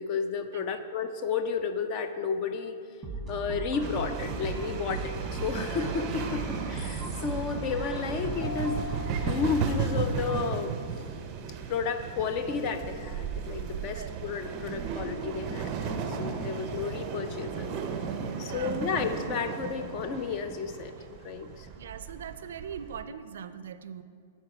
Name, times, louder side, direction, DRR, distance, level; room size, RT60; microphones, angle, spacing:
voice 1, 0.0-2.8 3.3-10.7 11.7-17.7 18.4-21.7, left 5 dB, 30° left, 9 dB, 0.4 m, -32 dB
sound 1, 3.0-10.5, right 3 dB, 10° right, 1.1 m, -37 dB
sound 2, 3.8-23.0, right 6 dB, 25° right, 0.5 m, -35 dB
sound 3, 8.4-11.7, left 4 dB, 70° left, 1.1 m, -44 dB
voice 2, 18.4-18.8 21.8-24.0, right 7 dB, 80° right, 12 dB, 0.4 m, -41 dB
7.9 x 4.5 x 5.8 m, 2.2 s
supercardioid pair, 170°, 0 cm